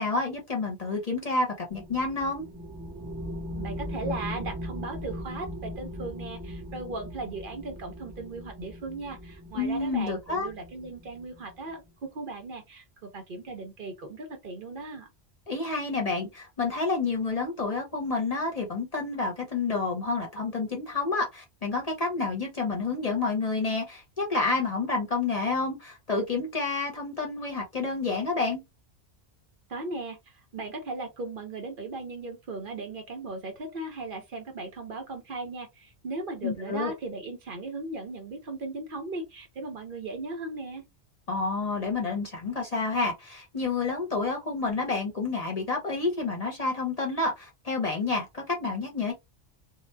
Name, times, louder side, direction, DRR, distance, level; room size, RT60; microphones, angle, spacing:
voice 1, 0.0-2.5 9.5-10.5 15.5-28.6 36.4-36.9 41.3-49.1, left 3 dB, 40° left, 0.7 m, -29 dB
sound 1, 1.7-11.7, equal, 20° right, 0.4 m, -39 dB
voice 2, 3.5-15.1 29.7-30.2 30.5-40.8, right 3 dB, 55° right, 0.8 m, -37 dB
2.8 x 2.0 x 3.2 m
omnidirectional pair, 1.1 m